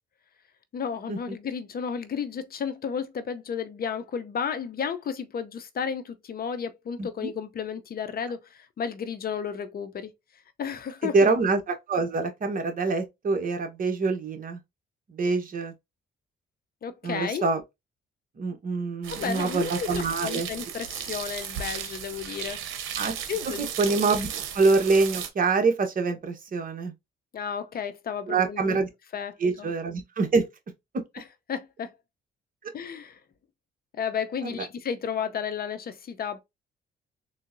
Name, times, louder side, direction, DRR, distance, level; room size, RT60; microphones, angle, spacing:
voice 1, 0.7-10.1 10.6-11.3 16.8-17.5 19.1-22.6 23.3-23.9 27.3-28.8 29.1-29.7 31.1-31.9 32.7-33.2 33.9-36.4, left 7 dB, 50° left, 0.7 m, -33 dB
voice 2, 7.0-7.3 11.1-14.6 15.1-15.7 17.0-17.6 18.4-20.5 23.0-23.1 23.8-24.3 24.5-26.9 28.3-28.9 29.4-30.5 32.6-32.7 34.4-34.7, right 4 dB, 45° right, 1.1 m, -25 dB
sound 1, 19.0-25.3, right 8 dB, 85° right, 0.7 m, -35 dB
3.8 x 2.8 x 2.6 m
cardioid pair, 90°, 20 cm